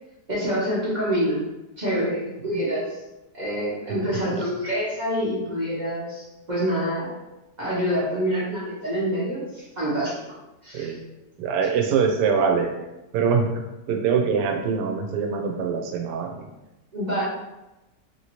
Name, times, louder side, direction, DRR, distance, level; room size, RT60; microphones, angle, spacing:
voice 1, 0.3-1.4 1.8-3.0 3.3-7.1 7.6-10.2 10.6-10.9 16.9-17.2, equal, 45° right, -7 dB, 0.5 m, -26 dB
voice 2, 11.4-12.7 13.1-16.5, right 6 dB, 80° right, 3 dB, 1.1 m, -24 dB
2.9 x 2.8 x 2.8 m, 0.99 s
omnidirectional pair, 1.8 m